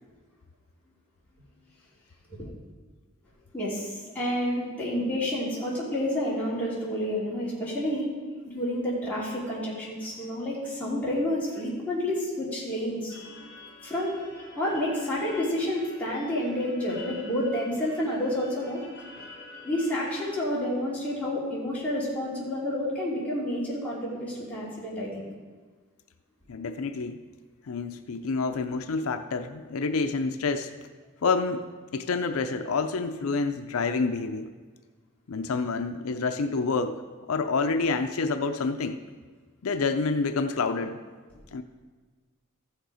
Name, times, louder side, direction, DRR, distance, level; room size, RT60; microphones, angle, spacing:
voice 1, 3.5-8.1 8.4-13.1 13.8-14.2 14.6-18.8 19.6-25.2, left 1 dB, 5° left, -8 dB, 2.9 m, -29 dB
sound 1, 13.1-20.4, left 2 dB, 55° left, 2.8 m, -47 dB
voice 2, 26.5-27.2 27.7-30.7 31.2-31.6 31.9-34.5 35.3-37.0 37.3-39.0 39.6-41.0 41.5-41.6, left 4 dB, 85° left, 8 dB, 0.5 m, -28 dB
14.5 x 6.5 x 4.9 m, 1.4 s
head